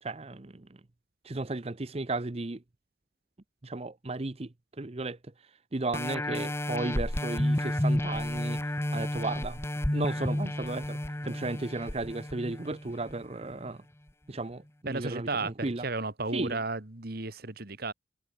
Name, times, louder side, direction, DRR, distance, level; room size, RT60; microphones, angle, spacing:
voice 1, 0.0-0.7 1.2-2.6 3.6-9.6 9.9-13.8 14.3-15.8 16.3-16.6, right 2 dB, 30° right, 0.7 m, -35 dB
sound 1, 5.9-13.1 13.7-13.8, left 1 dB, 15° left, 1.0 m, -31 dB
voice 2, 14.9-17.9, right 3 dB, 55° right, 2.0 m, -34 dB
head